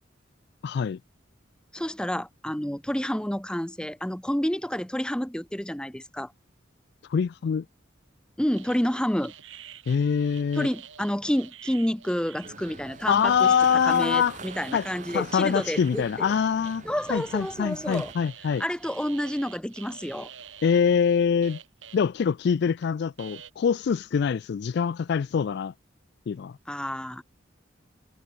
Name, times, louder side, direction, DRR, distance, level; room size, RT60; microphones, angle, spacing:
voice 1, 0.6-1.0 7.1-7.6 9.9-10.7 13.1-14.4 14.7-14.9 15.1-16.8 17.1-18.6 20.6-21.6 21.9-25.7 26.3-26.6, left 7 dB, 60° left, 0.3 m, -24 dB
voice 2, 1.7-6.3 8.4-9.3 10.6-13.5 13.9-16.3 16.8-18.1 18.6-20.3 26.7-27.2, equal, 5° left, 1.0 m, -29 dB
sound 1, 8.5-17.6 17.9-22.1 22.8-22.9 23.2-23.5, right 9 dB, 80° right, 4.4 m, -47 dB
sound 2, 12.4-18.1, right 3 dB, 40° right, 2.3 m, -44 dB
head